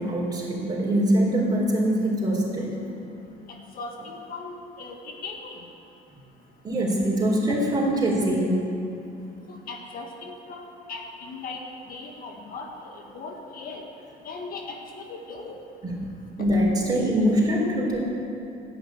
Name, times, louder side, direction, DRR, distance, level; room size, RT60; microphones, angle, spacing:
voice 1, 0.0-2.8 6.6-8.7 15.8-16.1 16.4-18.1, right 1 dB, 25° right, -3 dB, 3.7 m, -23 dB
voice 2, 3.5-5.6 9.5-11.6 11.9-13.9 14.2-15.6, left 3 dB, 60° left, 2 dB, 1.6 m, -38 dB
10.5 x 9.1 x 9.3 m, 2.7 s
cardioid pair, 110°, 17 cm